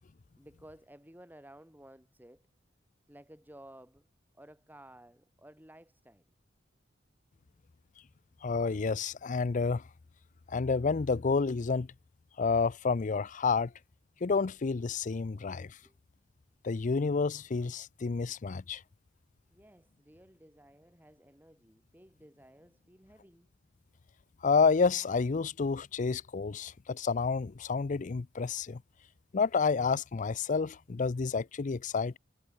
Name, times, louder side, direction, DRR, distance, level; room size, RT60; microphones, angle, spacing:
voice 1, 0.4-2.4 3.1-4.1 4.3-6.3 15.8-16.0 19.5-23.5, right 1 dB, 10° right, 5.5 m, -55 dB
voice 2, 8.4-9.8 10.5-11.9 12.4-13.7 14.2-15.7 16.6-18.8 24.4-28.8 29.3-32.2, left 4 dB, 40° left, 0.5 m, -29 dB
head